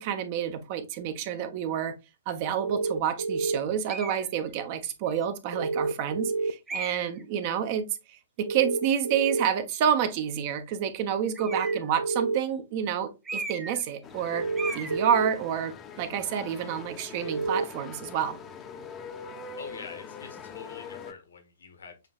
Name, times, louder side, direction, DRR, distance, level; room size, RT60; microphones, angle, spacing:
voice 1, 0.0-1.9 2.3-14.5 14.7-18.4, right 9 dB, 40° right, 0.8 m, -29 dB
sound 1, 2.6-3.6 5.5-6.5 8.5-9.4 11.4-12.4 14.3-15.3 17.2-17.6, right 4 dB, 70° right, 0.4 m, -28 dB
sound 2, 3.9-4.3 5.1-5.2 6.7-7.2 11.3-11.9 13.2-13.8 14.1-14.3 14.6-15.0, right 3 dB, 10° right, 1.1 m, -36 dB
sound 3, 14.0-21.1, left 5 dB, 20° left, 0.7 m, -43 dB
voice 2, 19.6-22.1, left 5 dB, 65° left, 1.1 m, -45 dB
6.6 x 3.1 x 2.4 m
figure-of-eight pair, 115°, 0 cm